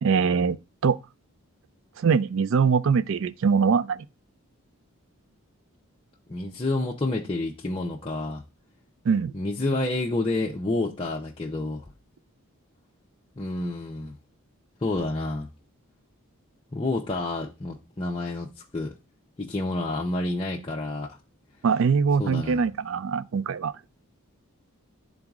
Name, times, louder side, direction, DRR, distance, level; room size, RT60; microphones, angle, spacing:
voice 1, 0.0-1.0 2.0-4.1 9.1-9.3 21.6-23.7, right 5 dB, 60° right, 0.3 m, -23 dB
voice 2, 6.3-8.4 9.3-11.9 13.4-14.2 14.8-15.5 16.7-18.9 19.4-21.2 22.2-22.6, left 2 dB, 25° left, 0.6 m, -29 dB
12.0 x 3.9 x 2.4 m
head